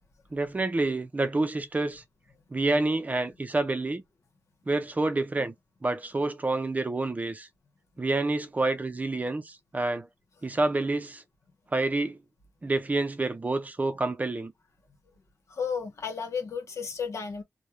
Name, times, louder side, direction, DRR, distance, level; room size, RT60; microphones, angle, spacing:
voice 1, 0.3-2.0 2.5-4.0 4.7-5.5 5.8-7.5 8.0-10.1 10.4-11.2 11.7-12.2 12.6-14.5, right 2 dB, 30° right, 0.5 m, -28 dB
voice 2, 15.5-17.4, left 6 dB, 80° left, 0.9 m, -33 dB
2.3 x 2.2 x 2.9 m
cardioid pair, 70°, 5 cm